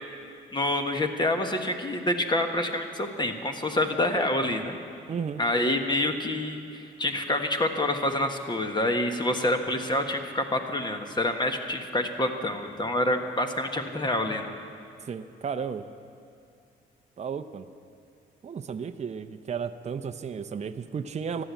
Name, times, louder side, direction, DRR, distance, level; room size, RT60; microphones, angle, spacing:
voice 1, 0.5-4.8 5.4-14.5, left 1 dB, 20° left, 5 dB, 1.4 m, -27 dB
voice 2, 5.1-5.4 15.0-15.8 17.2-17.7 18.4-21.4, right 6 dB, 35° right, 8 dB, 0.7 m, -33 dB
15.0 x 11.5 x 8.3 m, 2.5 s
cardioid pair, 90°, 20 cm